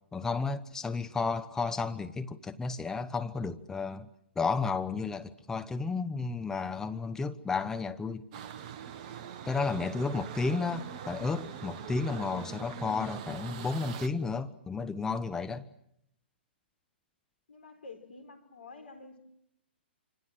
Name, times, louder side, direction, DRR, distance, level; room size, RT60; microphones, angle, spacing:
voice 1, 0.1-4.1 4.4-8.2 9.5-15.6, left 4 dB, 10° left, 1.0 m, -32 dB
sound 1, 8.3-14.1, right 8 dB, 40° right, 1.4 m, -43 dB
voice 2, 17.5-19.2, left 3 dB, 70° left, 4.6 m, -49 dB
27.0 x 26.0 x 7.6 m
figure-of-eight pair, 120°, 6 cm